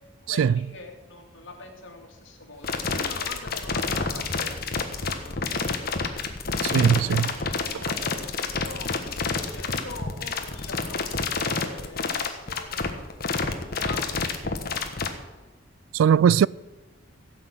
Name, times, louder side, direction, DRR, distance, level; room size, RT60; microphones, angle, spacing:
voice 1, 0.2-5.6 7.6-13.0 13.5-14.6, left 2 dB, 70° left, 2.7 m, -43 dB
sound 1, 2.6-15.1, left 4 dB, 50° left, 1.3 m, -28 dB
voice 2, 6.7-7.3 15.9-16.5, right 7 dB, 85° right, 0.3 m, -19 dB
16.5 x 6.2 x 8.6 m
head